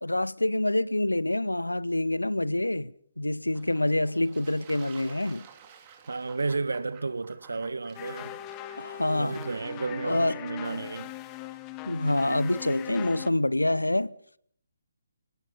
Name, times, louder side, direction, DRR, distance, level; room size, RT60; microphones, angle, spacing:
voice 1, 0.0-2.9 3.2-5.5 8.8-9.4 10.0-10.4 11.8-14.1, left 1 dB, 80° left, 0.9 m, -26 dB
Fowl / Bird / Water, 3.5-10.0, right 7 dB, 25° right, 3.9 m, -52 dB
voice 2, 6.1-8.4 9.1-11.1, right 3 dB, 65° right, 1.6 m, -32 dB
sound 1, 7.9-13.3, left 13 dB, 20° left, 1.1 m, -40 dB
30.0 x 18.0 x 5.4 m
figure-of-eight pair, 140°, 0 cm